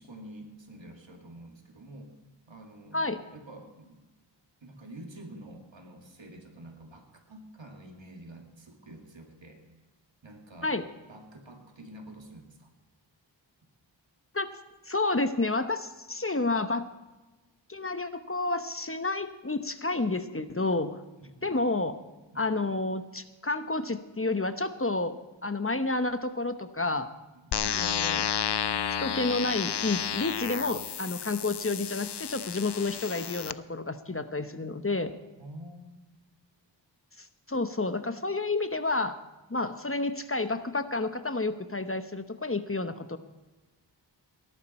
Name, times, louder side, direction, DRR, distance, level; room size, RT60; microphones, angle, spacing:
voice 1, 0.0-2.2 2.5-4.1 4.6-9.7 10.2-12.7 21.2-21.5 22.3-22.6 27.3-27.8 35.4-36.0, right 1 dB, 75° right, 3 dB, 2.4 m, -48 dB
voice 2, 14.8-16.9 17.7-21.0 21.4-22.0 22.3-25.2 25.4-27.1 27.6-28.3 28.9-35.1 37.2-39.2 39.5-43.2, left 2 dB, 30° left, 10 dB, 1.0 m, -30 dB
sound 1, 27.5-33.5, left 8 dB, 65° left, 0.6 m, -31 dB
18.5 x 11.5 x 4.3 m, 1.1 s
wide cardioid pair, 45°, 45 cm